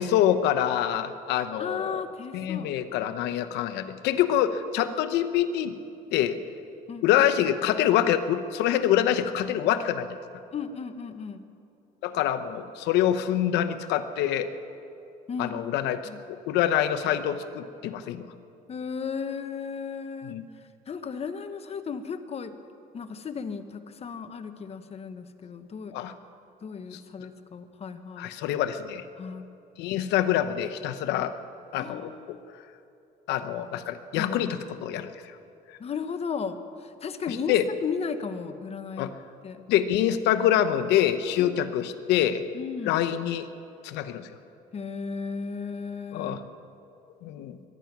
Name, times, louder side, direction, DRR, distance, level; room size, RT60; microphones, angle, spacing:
voice 1, 0.0-2.0 2.3-5.8 6.1-6.4 7.0-10.1 12.0-14.5 15.4-16.0 16.5-18.3 20.2-20.4 25.9-26.1 26.9-27.0 28.2-29.0 29.8-31.3 31.7-32.1 33.3-35.1 37.3-37.6 39.0-39.1 39.7-42.4 42.9-43.5 43.8-44.3 46.1-46.4 47.2-47.6, left 11 dB, 90° left, 10 dB, 0.8 m, -25 dB
voice 2, 1.6-2.7 4.8-5.0 6.9-7.2 10.5-11.4 15.3-15.6 16.0-16.2 18.7-20.4 20.9-22.5 22.9-26.0 26.6-28.3 29.2-29.5 31.8-32.4 34.2-34.4 35.8-37.6 37.8-39.1 39.4-39.6 41.4-41.5 42.5-43.0 44.7-46.4, left 5 dB, 40° left, 9 dB, 1.0 m, -35 dB
22.5 x 10.5 x 6.0 m, 2.6 s
cardioid pair, 110°, 17 cm